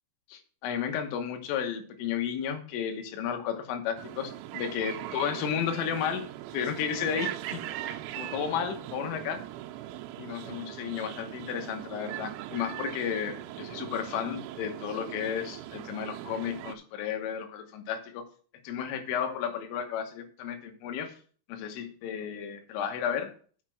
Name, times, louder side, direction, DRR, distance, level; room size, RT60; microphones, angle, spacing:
voice 1, 0.3-6.2 6.5-7.6 8.2-9.4 10.2-18.3 18.7-21.2 21.5-23.3, left 8 dB, 90° left, 5 dB, 3.7 m, -33 dB
sound 1, 4.0-16.7, right 13 dB, 80° right, 3.1 m, -40 dB
6.7 x 6.6 x 6.1 m, 0.43 s
omnidirectional pair, 5.6 m